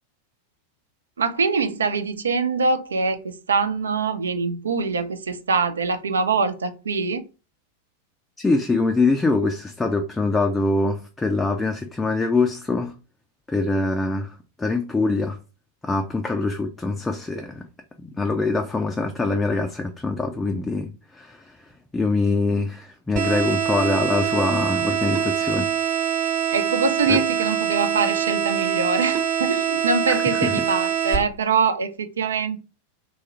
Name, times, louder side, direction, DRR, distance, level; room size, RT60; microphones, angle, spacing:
voice 1, 1.2-7.2 26.5-32.6, right 4 dB, 70° right, 0.4 m, -24 dB
voice 2, 8.4-12.9 13.5-15.4 15.8-17.7 18.0-21.6 21.9-25.7 27.1-27.2 30.1-30.5, left 3 dB, 10° left, 0.3 m, -24 dB
sound 1, 23.2-31.2, right 9 dB, 45° right, 1.0 m, -24 dB
3.0 x 2.3 x 2.8 m
figure-of-eight pair, 90°, 0 cm